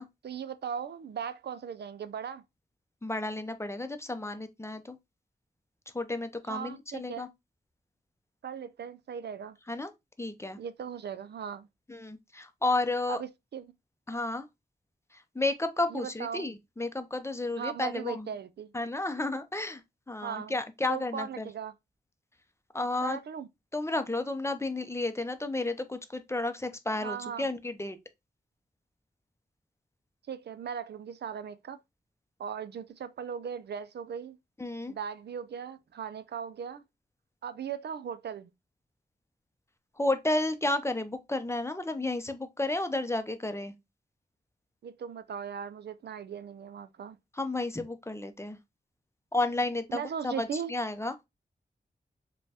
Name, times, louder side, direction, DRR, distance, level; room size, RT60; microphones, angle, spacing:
voice 1, 0.2-2.4 6.5-7.3 8.4-9.6 10.6-11.7 13.1-13.7 15.9-16.5 17.6-18.7 20.2-20.5 20.9-21.7 23.0-23.5 27.0-27.5 30.3-31.8 32.4-34.4 34.9-36.8 37.4-38.5 44.8-47.2 49.9-50.7, right 7 dB, 75° right, 0.4 m, -38 dB
voice 2, 3.0-5.0 5.9-7.3 9.7-9.9 10.2-10.6 11.9-13.2 14.1-14.5 15.1-18.3 18.7-19.8 20.1-21.5 22.7-23.2 23.7-28.0 34.6-34.9 40.0-43.7 47.3-48.6 49.3-51.1, left 2 dB, 15° left, 0.5 m, -32 dB
5.1 x 2.2 x 2.8 m
cardioid pair, 65°, 17 cm